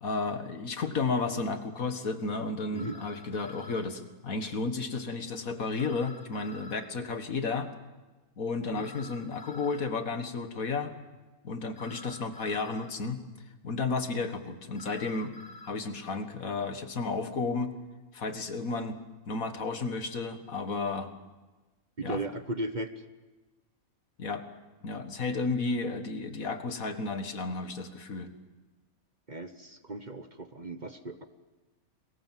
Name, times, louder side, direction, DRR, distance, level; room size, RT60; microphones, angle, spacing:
voice 1, 0.0-7.7 8.4-11.0 11.4-13.2 13.6-15.3 15.6-17.8 18.1-19.0 19.3-21.1 22.0-22.2 24.2-24.4 24.8-28.3, left 4 dB, 70° left, 8 dB, 2.1 m, -32 dB
sound 1, 0.8-0.9 2.8-3.9 5.8-6.9 8.8-9.9 11.8-12.9 14.8-15.7, left 2 dB, 50° left, 1.8 m, -49 dB
voice 2, 22.0-23.1 29.3-31.3, right 2 dB, 35° right, 9 dB, 1.2 m, -36 dB
30.0 x 21.5 x 7.6 m, 1.2 s
omnidirectional pair, 1.5 m